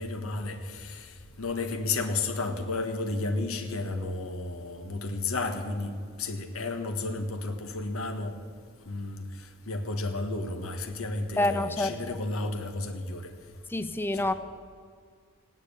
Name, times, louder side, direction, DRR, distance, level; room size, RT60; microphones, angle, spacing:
voice 1, 0.0-8.4 8.9-13.3 14.1-14.2, left 3 dB, 85° left, 1.4 m, -32 dB
voice 2, 11.4-12.0 13.7-14.3, left 2 dB, 10° left, 0.4 m, -27 dB
16.5 x 9.7 x 8.5 m
head